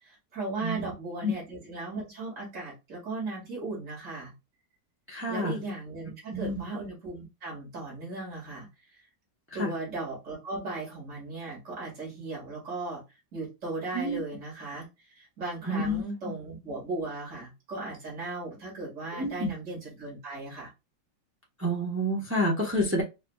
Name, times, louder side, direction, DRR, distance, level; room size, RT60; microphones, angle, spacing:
voice 1, 0.0-4.3 5.3-9.0 9.5-13.0 13.3-14.9 15.1-20.7, right 2 dB, 40° right, -4 dB, 2.5 m, -37 dB
voice 2, 5.1-5.6 6.3-6.6 9.6-9.7 13.9-14.2 15.7-16.0 19.1-19.5 21.6-23.0, equal, 20° right, -2 dB, 0.4 m, -28 dB
4.8 x 2.9 x 2.3 m, 0.25 s
omnidirectional pair, 2.0 m